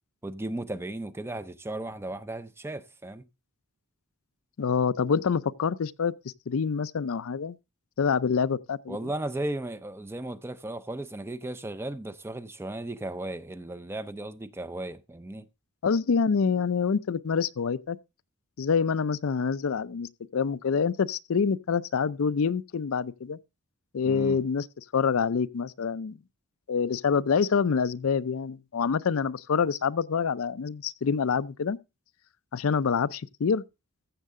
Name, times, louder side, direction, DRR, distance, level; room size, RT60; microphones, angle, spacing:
voice 1, 0.2-3.3 8.9-15.5 24.0-24.4, right 1 dB, 10° right, 0.4 m, -35 dB
voice 2, 4.6-6.1 6.5-7.6 8.0-9.0 15.8-18.0 18.6-23.4 23.9-24.7 24.9-26.2 26.7-31.8 32.5-33.6, left 6 dB, 65° left, 0.4 m, -26 dB
15.0 x 6.6 x 3.6 m
head